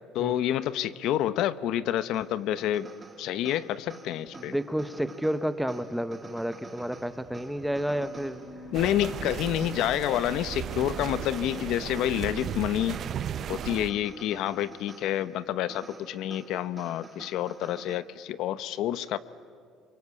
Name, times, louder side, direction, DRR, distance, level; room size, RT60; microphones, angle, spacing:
voice 1, 0.1-2.9 3.2-4.5 8.7-13.0 13.5-19.2, left 12 dB, 65° left, 15 dB, 0.8 m, -28 dB
sound 1, 2.1-18.0, right 3 dB, 20° right, 1.6 m, -49 dB
voice 2, 4.4-8.4 9.0-9.1, equal, ahead, 12 dB, 0.9 m, -31 dB
sound 2, 6.7-11.3, left 1 dB, 85° left, 5.6 m, -51 dB
sound 3, 8.7-13.9, right 9 dB, 45° right, 0.7 m, -35 dB
27.0 x 24.0 x 8.3 m, 2.2 s
cardioid pair, 135°, 0 cm